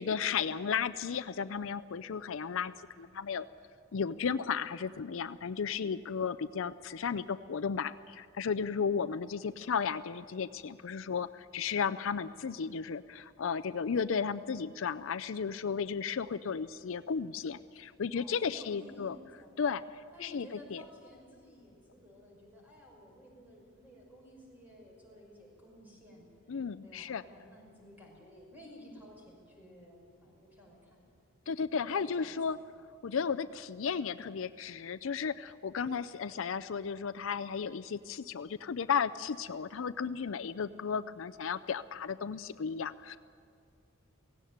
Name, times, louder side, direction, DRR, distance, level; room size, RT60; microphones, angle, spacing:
voice 1, 0.0-3.5 3.9-19.2 19.6-19.8 20.2-20.8 26.5-27.2 31.5-32.6 33.0-43.2, left 6 dB, 65° left, 14 dB, 0.5 m, -34 dB
voice 2, 18.1-19.6 20.1-26.3 26.8-31.0 31.7-32.6, left 1 dB, 10° right, -2 dB, 5.7 m, -54 dB
17.5 x 16.5 x 9.4 m, 2.3 s
head